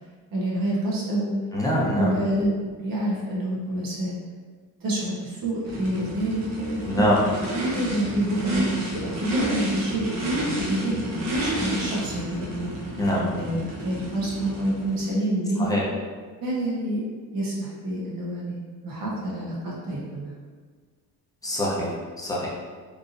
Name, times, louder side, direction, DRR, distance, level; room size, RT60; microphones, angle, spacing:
voice 1, 0.3-1.3 2.0-4.1 4.8-7.1 7.6-13.0 13.3-15.8 16.4-17.0 17.3-18.6 18.8-20.3, right 1 dB, 65° right, -5 dB, 1.3 m, -28 dB
voice 2, 1.5-2.1 6.9-7.2 13.0-13.3 15.6-15.8 21.4-22.5, equal, 10° left, -6 dB, 0.7 m, -24 dB
Race car auto racing / Idling / Accelerating revving vroom, 5.6-15.1, right 1 dB, 45° right, 0.9 m, -30 dB
3.5 x 2.7 x 2.6 m, 1.5 s
cardioid pair, 125°, 38 cm